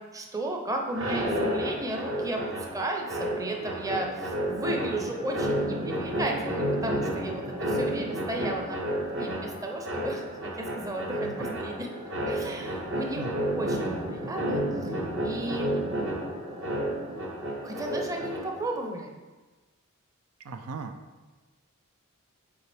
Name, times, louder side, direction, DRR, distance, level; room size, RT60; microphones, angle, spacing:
voice 1, 0.1-11.9 12.3-14.9 15.2-15.8 17.6-19.1, right 1 dB, 15° right, 1 dB, 0.6 m, -34 dB
sound 1, 0.9-18.7, right 1 dB, 55° right, 1.0 m, -31 dB
voice 2, 11.2-11.6 13.2-13.3 20.4-21.0, right 4 dB, 80° right, 7 dB, 0.5 m, -38 dB
6.9 x 4.7 x 3.4 m, 1.3 s
head